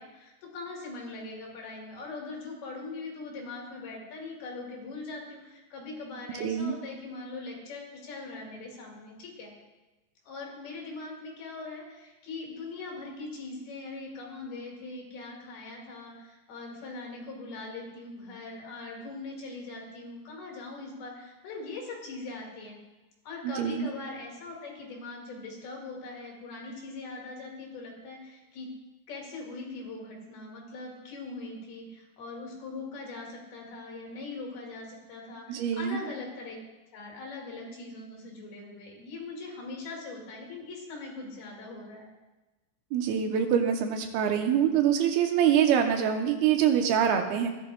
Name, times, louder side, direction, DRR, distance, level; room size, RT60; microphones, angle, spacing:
voice 1, 0.0-9.5 10.3-22.8 23.3-28.7 29.1-36.6 36.9-42.1, left 3 dB, 85° left, -1 dB, 4.0 m, -41 dB
voice 2, 6.4-6.8 23.4-23.9 35.5-36.0 42.9-47.5, right 8 dB, 90° right, 4 dB, 2.9 m, -25 dB
16.0 x 11.0 x 2.4 m, 1.1 s
omnidirectional pair, 4.3 m